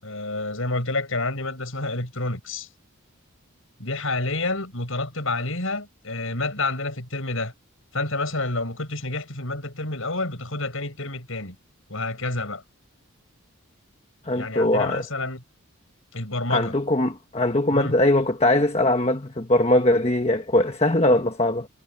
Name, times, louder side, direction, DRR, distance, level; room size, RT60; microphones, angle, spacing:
voice 1, 0.0-2.7 3.8-7.5 7.9-11.6 11.9-12.6 14.3-15.4 16.1-16.7 17.7-18.0, left 2 dB, 65° left, 7.5 m, -29 dB
voice 2, 14.2-15.0 16.5-21.7, left 1 dB, 30° left, 1.4 m, -21 dB
head